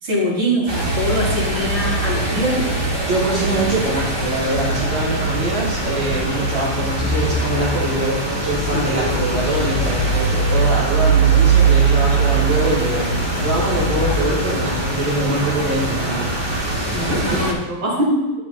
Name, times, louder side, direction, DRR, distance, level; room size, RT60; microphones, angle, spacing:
voice 1, 0.0-2.7 8.7-8.8 16.9-18.4, equal, 75° right, -9 dB, 3.7 m, -22 dB
sound 1, 0.7-17.5, right 3 dB, 25° right, 0.5 m, -21 dB
voice 2, 3.1-17.4, right 2 dB, 60° right, -11 dB, 2.7 m, -24 dB
10.0 x 6.0 x 2.5 m, 1.1 s
omnidirectional pair, 2.4 m